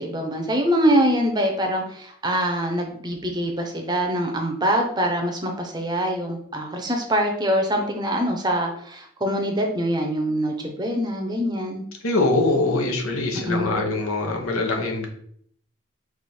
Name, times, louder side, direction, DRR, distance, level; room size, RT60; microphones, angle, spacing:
voice 1, 0.0-11.8 13.5-13.7, equal, 20° right, 2 dB, 0.6 m, -24 dB
voice 2, 12.0-15.1, left 2 dB, 90° left, 2 dB, 1.0 m, -23 dB
4.8 x 2.6 x 4.2 m, 0.64 s
head